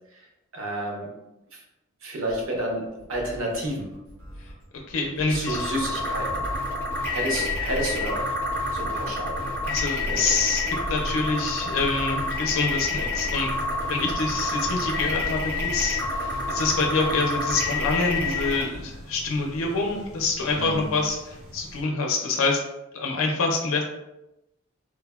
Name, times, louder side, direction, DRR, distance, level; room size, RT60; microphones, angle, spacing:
voice 1, 0.5-1.1 1.5-1.6 2.0-2.8 3.1-3.9 5.3-6.5 7.0-8.2 8.7-9.4 10.1-10.4 20.5-20.8, right 1 dB, 70° right, -1 dB, 0.7 m, -30 dB
sound 1, 2.4-16.7 18.5-19.1, equal, 85° right, 1.2 m, -43 dB
voice 2, 4.9-5.7 7.4-7.5 9.7-13.5 13.8-22.6 22.9-23.8, left 3 dB, 75° left, 1 dB, 0.4 m, -26 dB
sound 2, 5.5-18.6, left 2 dB, 10° left, 0.4 m, -28 dB
sound 3, 13.1-21.8, equal, 35° right, 0.5 m, -46 dB
3.1 x 2.0 x 2.2 m, 0.94 s
head